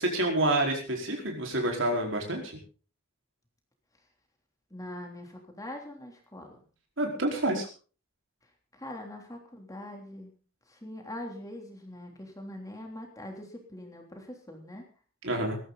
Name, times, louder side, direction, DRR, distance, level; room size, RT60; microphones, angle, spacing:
voice 1, 0.0-2.6 7.0-7.7 15.2-15.6, right 1 dB, 70° right, 1 dB, 4.7 m, -28 dB
voice 2, 4.7-6.6 8.7-10.3 10.7-14.9, left 1 dB, 20° left, 2 dB, 3.3 m, -42 dB
20.0 x 14.5 x 4.1 m, 0.38 s
head